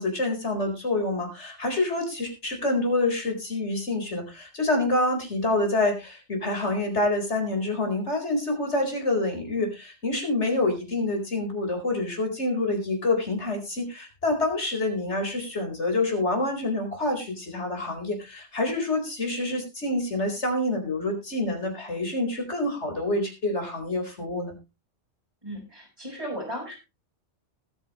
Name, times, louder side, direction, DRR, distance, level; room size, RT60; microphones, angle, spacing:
voice 1, 0.0-24.5, left 2 dB, 90° left, 4 dB, 4.6 m, -27 dB
voice 2, 25.4-26.7, equal, 30° right, -5 dB, 5.3 m, -35 dB
20.0 x 9.0 x 3.0 m, 0.27 s
omnidirectional pair, 1.1 m